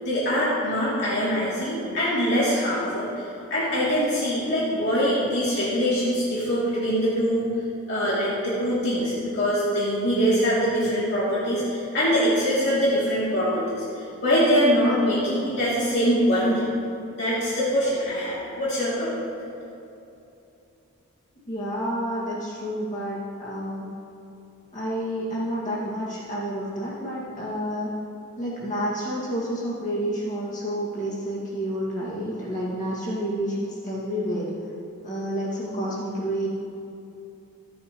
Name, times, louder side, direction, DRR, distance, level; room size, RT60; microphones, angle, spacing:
voice 1, 0.0-7.5 7.9-16.7 17.1-19.3, equal, 50° left, -9 dB, 3.0 m, -23 dB
voice 2, 21.5-23.9 24.7-27.9 28.4-34.5 35.0-36.5, equal, 35° left, -7 dB, 2.2 m, -29 dB
25.5 x 9.4 x 3.2 m, 2.8 s
head